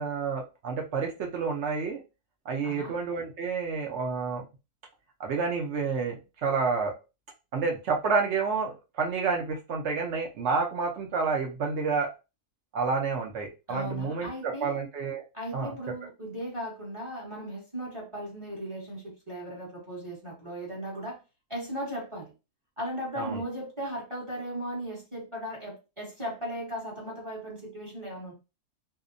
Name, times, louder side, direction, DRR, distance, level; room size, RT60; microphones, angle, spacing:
voice 1, 0.0-2.0 2.5-4.4 5.2-6.9 7.5-12.1 12.7-15.2 15.5-15.7 23.2-23.4, right 5 dB, 65° right, 1 dB, 0.7 m, -29 dB
voice 2, 2.6-2.9 13.7-14.8 15.3-21.2 21.5-22.3 22.8-28.3, equal, 25° right, -4 dB, 0.9 m, -37 dB
2.7 x 2.1 x 2.5 m, 0.28 s
omnidirectional pair, 1.6 m